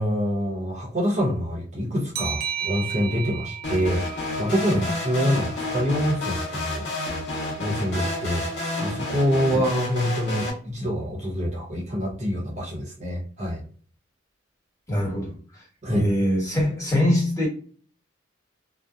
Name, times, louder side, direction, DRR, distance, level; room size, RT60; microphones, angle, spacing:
voice 1, 0.0-4.0 4.4-6.9 7.6-8.5 8.8-13.6 15.8-16.1, equal, 40° right, 0.7 m, -26 dB
sound 1, 2.1-5.5, right 8 dB, 55° right, 0.3 m, -34 dB
sound 2, 3.6-10.5, left 2 dB, 65° left, 0.9 m, -30 dB
voice 2, 14.9-15.6 15.9-17.5, left 1 dB, 20° left, 1.2 m, -23 dB
2.6 x 2.0 x 2.3 m
head